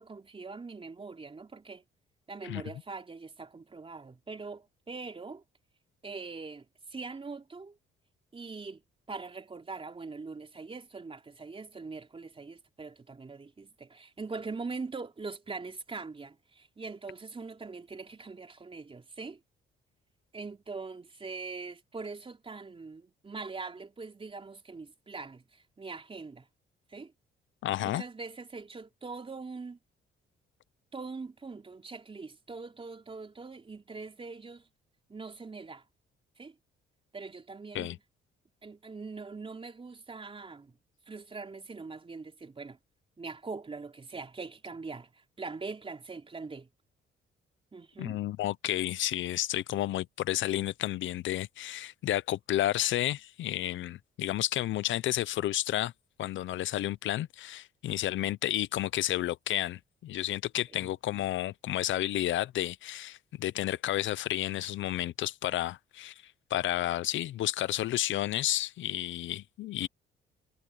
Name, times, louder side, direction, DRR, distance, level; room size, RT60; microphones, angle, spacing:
voice 1, 0.0-1.8 2.3-5.4 6.0-6.7 6.9-7.8 8.3-8.8 9.1-19.4 20.3-26.5 26.9-27.1 27.8-29.8 30.9-34.7 35.1-35.8 36.4-36.5 37.1-38.0 38.6-40.8 41.1-42.8 43.2-46.7 47.7-48.2 60.8-60.9, right 4 dB, 25° right, 3.6 m, -42 dB
voice 2, 27.6-28.0 37.7-38.0 48.0-55.9 56.2-66.1 66.5-69.9, left 14 dB, 75° left, 0.7 m, -31 dB
cardioid pair, 90°, 20 cm